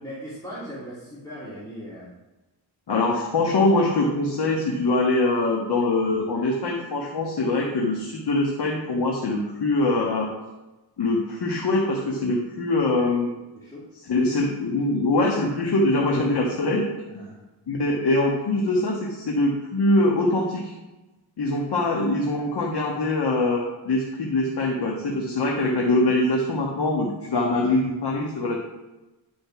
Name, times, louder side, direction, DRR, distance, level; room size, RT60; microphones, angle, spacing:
voice 1, 0.0-2.1 13.5-13.8 17.1-17.5, equal, 5° left, -8 dB, 2.4 m, -39 dB
voice 2, 2.9-10.3 11.0-13.3 14.0-17.0 17.7-20.7 21.4-28.6, left 2 dB, 55° left, -1 dB, 1.5 m, -23 dB
10.5 x 5.1 x 6.0 m, 1.1 s
cardioid pair, 110°, 47 cm